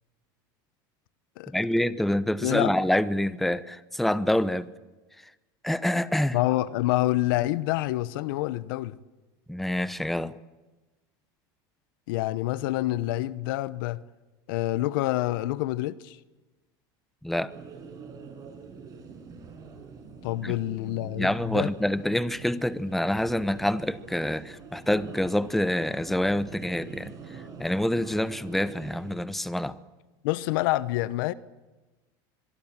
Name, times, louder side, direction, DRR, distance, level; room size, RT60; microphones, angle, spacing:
voice 1, 1.5-4.7 5.6-6.4 9.5-10.3 17.2-17.5 20.4-20.5 21.2-27.1 27.6-29.8, left 1 dB, ahead, 0.8 m, -26 dB
voice 2, 2.4-2.7 6.3-9.0 12.1-14.0 14.5-16.2 20.2-21.7 30.2-31.3, left 16 dB, 75° left, 0.9 m, -27 dB
sound 1, 17.5-29.2, right 5 dB, 35° right, 6.1 m, -45 dB
24.5 x 22.5 x 7.4 m
supercardioid pair, 125°, 11 cm